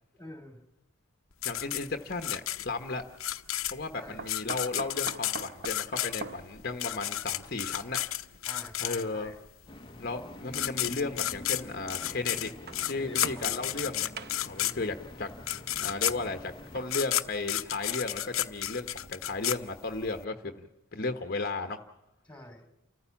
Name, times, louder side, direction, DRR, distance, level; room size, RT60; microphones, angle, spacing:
voice 1, 0.1-0.6 4.0-4.2 8.4-9.4 13.0-13.9 18.9-19.0 22.2-22.7, left 1 dB, 5° left, 6 dB, 3.0 m, -47 dB
sound 1, 1.4-9.3 10.2-10.3 10.5-20.2, left 13 dB, 75° left, 0.9 m, -32 dB
voice 2, 1.4-3.0 3.7-8.0 8.8-9.3 10.0-12.5 12.9-14.1 14.4-15.3 15.8-20.6 20.9-21.8, left 3 dB, 45° left, 6 dB, 1.1 m, -34 dB
sound 2, 1.8-1.9 4.2-8.5 9.4-9.5 10.7-10.8 12.4-13.9 14.2-14.7 16.5-17.9 18.4-18.5 18.8-18.9, right 3 dB, 50° right, 0.8 m, -45 dB
sound 3, 9.7-16.8, left 1 dB, 25° left, 1.0 m, -46 dB
29.5 x 14.5 x 7.1 m, 0.91 s
head